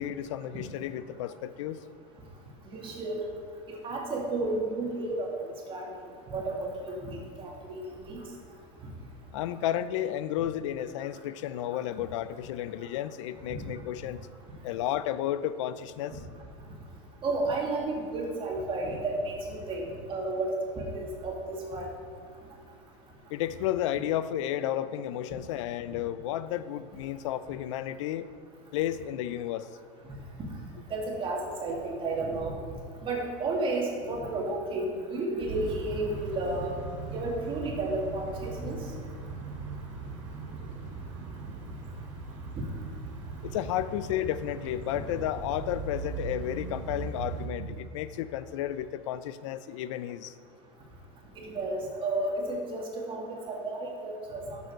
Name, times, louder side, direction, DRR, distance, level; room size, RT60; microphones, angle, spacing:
voice 1, 0.0-1.8 9.3-14.2 14.6-16.2 23.3-28.3 28.7-29.7 43.4-50.3, left 12 dB, 75° left, 14 dB, 0.5 m, -32 dB
voice 2, 2.7-3.2 3.8-5.3 5.7-5.9 6.3-7.8 8.1-8.2 17.2-21.9 30.9-32.5 33.0-36.7 37.1-38.8 51.4-54.6, right 2 dB, 35° right, -1 dB, 2.2 m, -32 dB
sound 1, 35.5-47.5, right 4 dB, 85° right, 2.1 m, -39 dB
6.8 x 6.1 x 6.5 m, 2.2 s
supercardioid pair, 115°, 16 cm